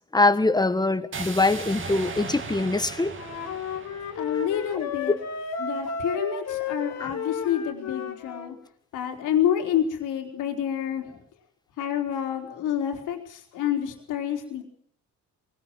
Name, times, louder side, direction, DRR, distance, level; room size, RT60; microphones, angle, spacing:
voice 1, 0.1-3.1 4.8-4.9 7.0-7.1, left 2 dB, 15° left, 1.6 m, -23 dB
sound 1, 1.1-5.2, right 4 dB, 40° right, 2.5 m, -38 dB
Wind instrument woodwind instrument, 3.2-8.5, left 5 dB, 55° left, 2.8 m, -33 dB
voice 2, 4.2-5.2 5.6-8.6 8.9-11.2 11.8-14.6, left 9 dB, 90° left, 4.0 m, -28 dB
21.5 x 18.5 x 7.7 m
cardioid pair, 90°, 30 cm